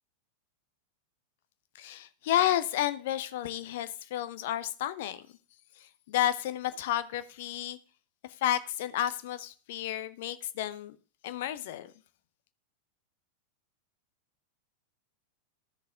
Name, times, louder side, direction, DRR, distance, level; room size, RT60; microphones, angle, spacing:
voice 1, 1.7-5.3 5.8-7.8 8.4-11.0 11.2-11.9, left 12 dB, 55° left, 0.8 m, -31 dB
14.0 x 6.6 x 3.7 m
figure-of-eight pair, 90°, 0 cm